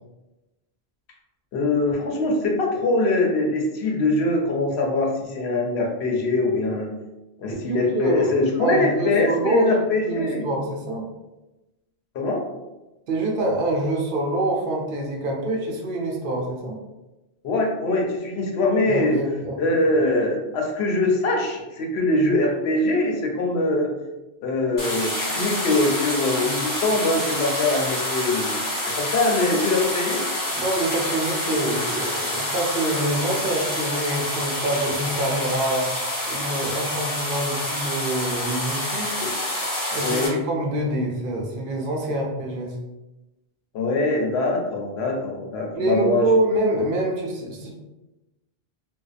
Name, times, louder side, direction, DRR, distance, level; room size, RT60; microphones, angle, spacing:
voice 1, 1.5-6.9 7.4-10.5 12.1-12.5 17.4-19.2 19.6-23.9 24.4-30.2 39.2-39.3 40.0-40.4 43.7-46.3, left 2 dB, 85° left, 0 dB, 0.9 m, -23 dB
voice 2, 7.5-9.7 10.1-11.0 13.1-16.8 18.9-19.5 30.5-35.9 36.2-39.1 39.9-42.8 45.7-47.7, right 1 dB, 65° right, 0 dB, 0.7 m, -25 dB
sound 1, 24.8-40.3, left 1 dB, 25° left, 0.6 m, -27 dB
2.6 x 2.1 x 2.4 m, 1.0 s
omnidirectional pair, 1.0 m